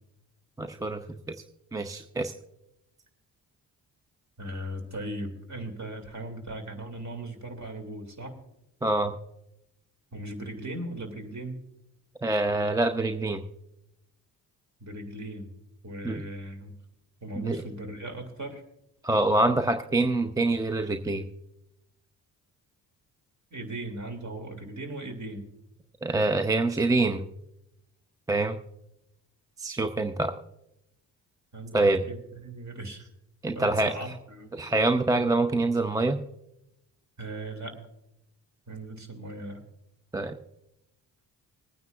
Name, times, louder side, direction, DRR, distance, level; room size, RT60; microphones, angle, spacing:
voice 1, 0.6-1.0 1.7-2.3 8.8-9.1 12.2-13.4 16.0-16.2 17.4-17.6 19.0-21.3 26.0-27.3 28.3-28.6 29.6-30.3 31.7-32.0 33.4-33.9 34.5-36.2 40.1-40.3, right 2 dB, 5° right, 7 dB, 0.6 m, -25 dB
voice 2, 4.4-8.4 10.1-11.6 14.8-15.5 15.8-16.7 17.2-18.6 23.5-25.4 31.5-33.1 33.5-34.5 37.2-37.8 38.7-39.6, right 1 dB, 35° right, 5 dB, 2.2 m, -38 dB
25.5 x 9.4 x 2.3 m, 0.84 s
hypercardioid pair, 45°, 47 cm